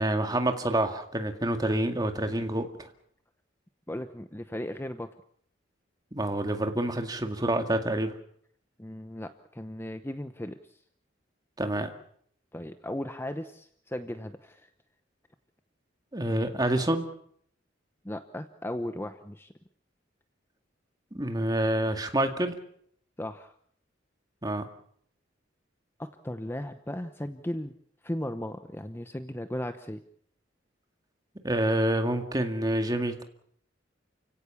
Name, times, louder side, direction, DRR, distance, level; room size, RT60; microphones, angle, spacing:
voice 1, 0.0-2.9 6.1-8.1 11.6-11.9 16.1-17.1 21.1-22.6 24.4-24.7 31.4-33.2, right 1 dB, 20° right, 6 dB, 2.2 m, -27 dB
voice 2, 3.9-5.1 8.8-10.8 12.5-14.7 18.0-19.5 23.2-23.5 26.0-27.7 28.0-30.0, left 1 dB, 10° left, 10 dB, 0.8 m, -36 dB
29.0 x 17.0 x 7.2 m, 0.65 s
head